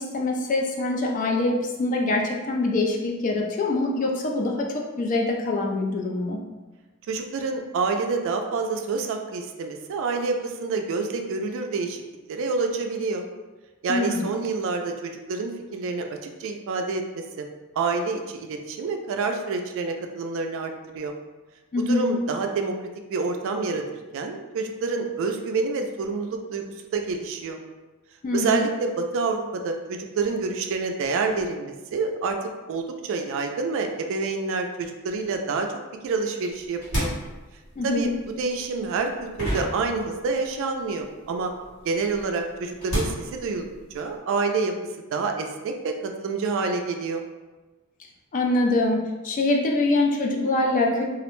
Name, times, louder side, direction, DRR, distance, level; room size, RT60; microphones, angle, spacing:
voice 1, 0.0-6.4 13.9-14.3 21.7-22.1 28.2-28.6 37.8-38.1 48.3-51.0, left 2 dB, 35° left, 0 dB, 0.3 m, -24 dB
voice 2, 7.1-12.0 12.3-13.2 13.8-17.5 17.8-21.1 21.9-22.7 23.1-23.8 24.1-26.6 26.9-27.6 28.3-32.4 32.7-35.7 36.0-37.1 37.8-38.1 38.4-41.5 41.8-43.7 43.9-44.7 45.1-47.2, right 4 dB, 60° right, 4 dB, 0.3 m, -27 dB
sound 1, 36.5-40.6 40.9-44.1, equal, 70° left, 1.5 m, -32 dB
2.4 x 2.1 x 3.0 m, 1.2 s
head